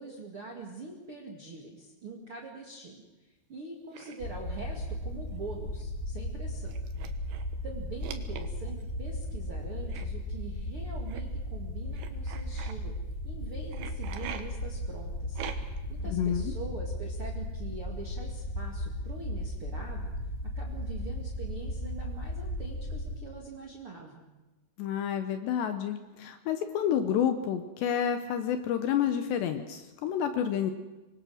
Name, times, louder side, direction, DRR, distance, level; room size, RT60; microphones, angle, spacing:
voice 1, 0.0-6.8 7.6-12.9 13.2-15.4 15.9-20.1 20.5-24.2, right 3 dB, 45° right, 0 dB, 2.0 m, -44 dB
sound 1, 3.9-4.2 5.3-5.5 5.8-5.9 6.7-7.5 8.0-8.8 9.9-10.1 11.1-11.2 11.9-12.7 13.7-14.4 15.3-15.9, right 9 dB, 70° right, 3.4 m, -42 dB
sound 2, 4.2-23.2, left 1 dB, 25° left, 3.7 m, -36 dB
voice 2, 16.0-16.5 24.8-30.7, left 9 dB, 75° left, 8 dB, 2.8 m, -29 dB
25.5 x 21.5 x 6.4 m, 1.1 s
omnidirectional pair, 5.6 m